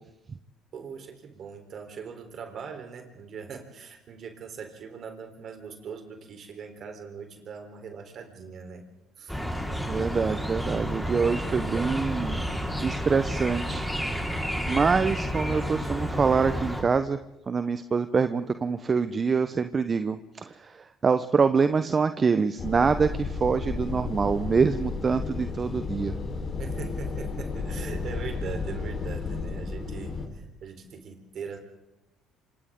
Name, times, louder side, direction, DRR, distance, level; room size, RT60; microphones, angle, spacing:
voice 1, 0.7-8.9 9.2-9.4 26.6-31.6, right 6 dB, 55° right, 5 dB, 3.9 m, -41 dB
sound 1, 9.3-16.8, equal, ahead, 4.5 m, -30 dB
voice 2, 9.9-12.4 12.8-13.9 14.7-17.2 17.5-26.2, right 5 dB, 35° right, 11 dB, 1.0 m, -25 dB
sound 2, 22.6-30.3, left 4 dB, 45° left, 4.4 m, -33 dB
27.5 x 26.5 x 3.8 m, 0.90 s
hypercardioid pair, 60°, 0 cm